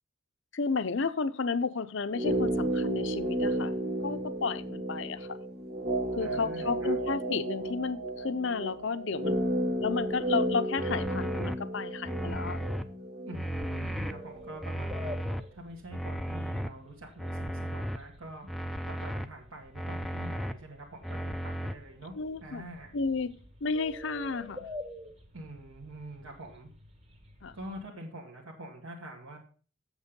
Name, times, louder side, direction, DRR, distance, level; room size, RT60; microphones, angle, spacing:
voice 1, 0.5-3.7 4.0-5.4 6.2-9.4 9.8-12.6 22.2-22.6 22.9-23.3 23.6-24.7 27.4-27.5, left 4 dB, 60° left, 12 dB, 0.6 m, -32 dB
sound 1, 2.1-14.2 14.5-14.6, right 1 dB, 45° right, 1.6 m, -32 dB
voice 2, 6.2-6.9 13.3-21.3 21.6-22.1 22.4-23.0 25.3-26.7 27.5-29.4, right 1 dB, 75° right, -2 dB, 1.8 m, -45 dB
sound 2, 10.8-11.6 12.1-12.8 13.3-14.1 14.6-15.4 15.9-16.7 17.2-18.0 18.5-19.3 19.8-20.5 21.0-21.7, equal, ahead, 0.4 m, -35 dB
sound 3, 13.8-27.9, left 1 dB, 30° right, 1.3 m, -49 dB
8.2 x 7.3 x 5.2 m, 0.39 s
head